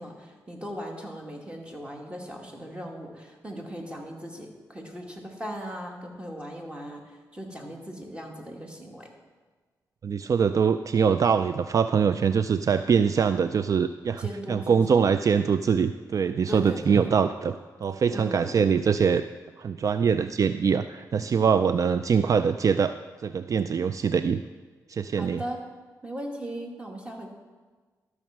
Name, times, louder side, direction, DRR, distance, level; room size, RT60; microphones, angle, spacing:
voice 1, 0.0-9.1 14.2-15.0 16.5-17.0 18.1-18.6 25.2-25.6 26.0-27.3, equal, 15° right, 1 dB, 2.3 m, -38 dB
voice 2, 10.0-19.2 19.6-22.9 23.2-24.4 24.9-25.4, right 6 dB, 55° right, 11 dB, 0.3 m, -23 dB
12.5 x 6.4 x 6.0 m, 1.4 s
cardioid pair, 60°, 7 cm